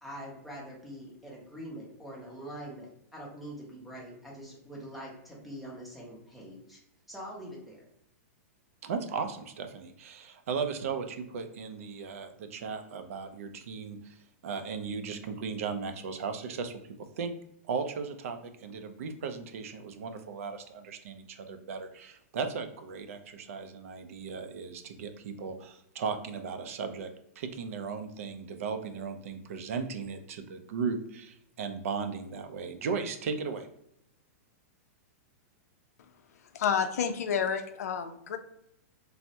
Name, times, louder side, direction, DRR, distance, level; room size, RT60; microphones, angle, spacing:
voice 1, 0.0-6.8 7.1-7.9, equal, ahead, -4 dB, 0.6 m, -44 dB
voice 2, 8.8-17.3 17.7-27.1 27.4-33.7, right 5 dB, 60° right, 8 dB, 0.4 m, -36 dB
voice 3, 36.5-38.4, left 7 dB, 80° left, 8 dB, 0.4 m, -29 dB
3.3 x 2.0 x 2.7 m, 0.77 s
supercardioid pair, 165°, 8 cm